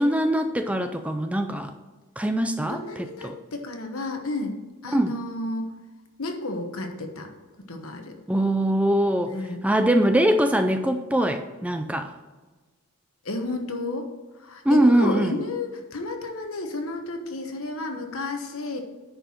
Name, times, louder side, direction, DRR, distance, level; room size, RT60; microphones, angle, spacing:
voice 1, 0.0-1.7 2.2-3.4 4.9-5.1 8.3-9.3 9.6-12.1 14.7-15.4, right 1 dB, 5° right, 7 dB, 0.3 m, -22 dB
voice 2, 2.7-4.6 4.8-5.7 6.2-7.3 7.7-8.1 9.3-9.6 13.2-14.1 14.4-18.8, left 2 dB, 70° left, 4 dB, 1.2 m, -31 dB
10.0 x 4.7 x 5.6 m, 1.3 s
head